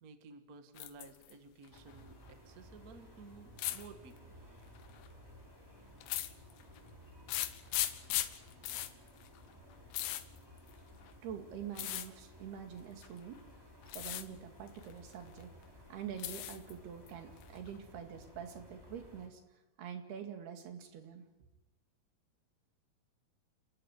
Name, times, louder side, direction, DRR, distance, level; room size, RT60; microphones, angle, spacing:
voice 1, 0.0-4.3, right 4 dB, 65° right, 7 dB, 0.9 m, -54 dB
sound 1, 0.8-1.3 1.7-2.3 3.6-3.9 4.8-5.1 6.0-6.8 7.3-11.1 11.7-12.1 13.0-13.4 13.8-14.3 14.6-15.4 15.8-16.7 17.1-17.8, left 14 dB, 90° left, 3.1 m, -38 dB
sound 2, 1.7-19.3, equal, 5° right, 3.5 m, -57 dB
voice 2, 11.2-13.4 13.9-15.6 15.9-19.4 19.8-21.3, right 8 dB, 80° right, 5 dB, 4.2 m, -46 dB
29.0 x 14.0 x 9.7 m, 1.0 s
omnidirectional pair, 4.6 m